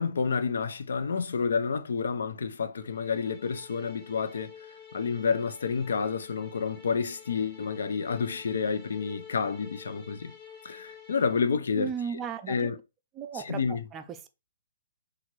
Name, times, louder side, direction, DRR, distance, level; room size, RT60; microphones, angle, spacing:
voice 1, 0.0-4.5 4.9-10.3 10.6-11.9 12.5-12.8 13.3-13.8, left 5 dB, 70° left, 0.4 m, -29 dB
sound 1, 2.7-11.6, left 7 dB, 30° left, 0.7 m, -50 dB
voice 2, 11.7-12.7 13.2-14.3, right 7 dB, 20° right, 0.3 m, -36 dB
2.9 x 2.4 x 3.0 m
hypercardioid pair, 130°, 0 cm